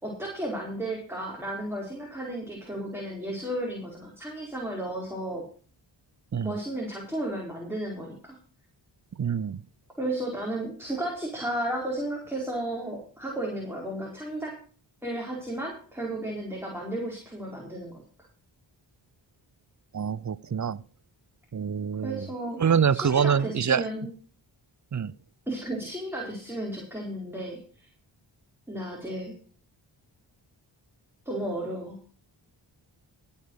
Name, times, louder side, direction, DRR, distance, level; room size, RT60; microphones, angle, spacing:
voice 1, 0.0-5.4 6.4-8.4 10.0-14.6 15.0-18.0 21.9-22.6 22.9-24.1 25.5-27.9 28.7-29.3 31.2-32.0, right 1 dB, 5° right, -2 dB, 4.8 m, -33 dB
voice 2, 9.2-9.6 19.9-20.8 21.5-22.3 22.6-23.8 24.9-25.1, right 7 dB, 35° right, 21 dB, 0.7 m, -25 dB
16.5 x 5.7 x 6.5 m, 0.40 s
cardioid pair, 50°, 48 cm